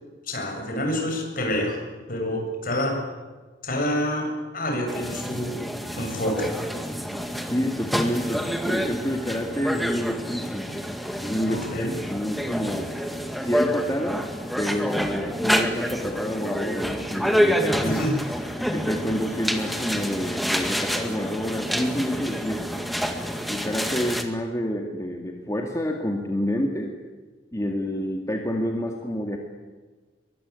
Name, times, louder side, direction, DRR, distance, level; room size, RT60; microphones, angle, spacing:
voice 1, 0.3-1.8 2.1-3.0 3.6-5.6 5.9-6.5 11.5-11.9 17.8-18.2, left 1 dB, 50° left, 2 dB, 7.4 m, -27 dB
sound 1, 4.9-24.2, equal, ahead, 2.0 m, -28 dB
voice 2, 7.5-10.6 11.2-12.9 13.4-14.3 14.6-18.0 18.7-22.9 23.5-26.9 27.5-29.4, equal, 15° left, 2 dB, 2.1 m, -28 dB
23.0 x 23.0 x 9.6 m, 1.3 s
head